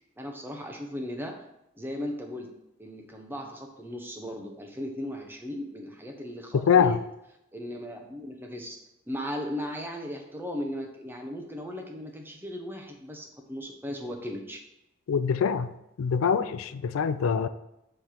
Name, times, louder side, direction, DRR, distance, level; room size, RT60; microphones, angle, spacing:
voice 1, 0.2-1.4 1.8-2.5 2.8-7.0 7.5-8.8 9.1-14.6, equal, 10° right, 2 dB, 0.8 m, -37 dB
voice 2, 6.7-7.0 15.1-15.7 16.0-17.5, left 7 dB, 85° left, 12 dB, 0.4 m, -24 dB
7.0 x 3.3 x 5.7 m, 0.85 s
head